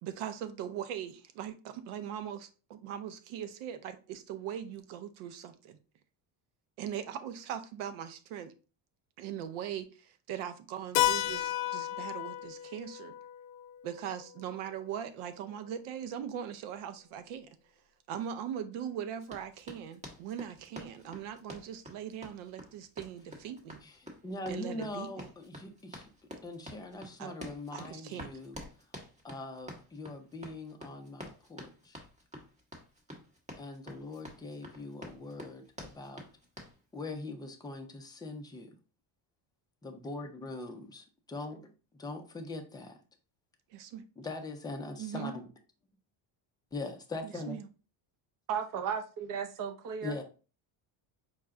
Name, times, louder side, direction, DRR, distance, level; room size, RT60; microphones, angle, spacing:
voice 1, 0.0-5.8 6.8-8.5 9.2-13.1 13.8-17.6 18.1-23.8 24.5-25.3 27.2-27.3 27.7-28.3 43.7-44.0 45.0-45.3 47.2-47.7, right 9 dB, 75° right, 0.8 m, -40 dB
Keyboard (musical), 11.0-15.4, left 13 dB, 60° left, 0.5 m, -34 dB
Run, 19.2-36.8, equal, 15° right, 0.9 m, -48 dB
voice 2, 24.2-26.1 26.4-28.6 29.2-32.0 33.6-36.2 36.9-38.8 39.8-41.7 42.0-43.0 44.2-45.5 46.7-47.6 50.0-50.2, left 2 dB, 10° left, 0.4 m, -42 dB
voice 3, 48.5-50.2, right 7 dB, 40° right, 0.6 m, -35 dB
4.8 x 2.2 x 3.6 m
cardioid pair, 135°, 50 cm